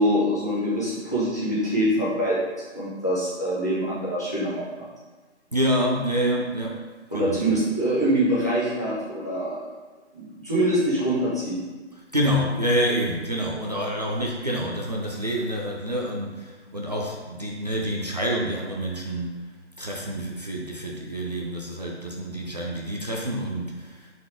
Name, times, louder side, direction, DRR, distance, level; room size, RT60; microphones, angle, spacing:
voice 1, 0.0-2.4 2.7-4.9 7.1-9.7 10.1-11.6, right 1 dB, 15° left, -9 dB, 0.5 m, -24 dB
voice 2, 5.5-6.9 7.1-7.6 12.1-19.5 19.8-24.1, equal, 35° right, -2 dB, 0.4 m, -27 dB
4.1 x 2.6 x 4.7 m, 1.3 s
figure-of-eight pair, 145°, 35 cm